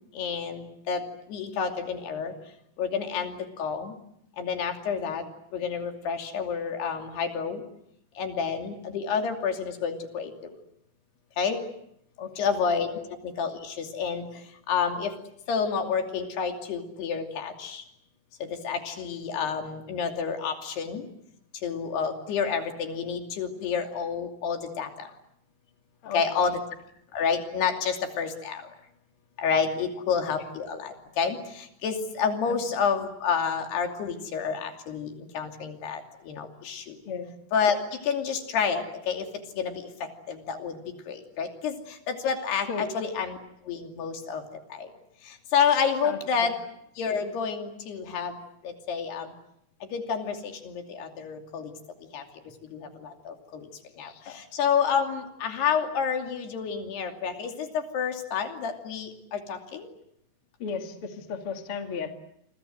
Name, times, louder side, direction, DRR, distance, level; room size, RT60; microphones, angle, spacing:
voice 1, 0.1-2.3 2.8-3.9 4.4-5.2 5.5-7.6 8.2-10.3 11.4-11.6 12.4-12.9 13.2-15.1 15.5-17.8 18.4-21.1 21.6-25.1 26.1-26.6 27.1-28.7 29.4-37.0 37.5-39.3 39.5-43.4 43.7-44.4 44.7-44.9 45.2-46.5 47.0-48.4 48.6-49.3 49.8-51.7 52.1-52.2 52.6-53.7 54.0-59.9, left 6 dB, 75° left, 4 dB, 4.8 m, -29 dB
voice 2, 12.2-12.5 26.0-26.2 32.4-32.6 37.0-37.3 42.7-42.9 46.0-46.5 54.0-54.4 60.6-62.1, left 5 dB, 40° left, 5 dB, 2.6 m, -35 dB
29.5 x 25.0 x 7.8 m, 0.75 s
omnidirectional pair, 4.7 m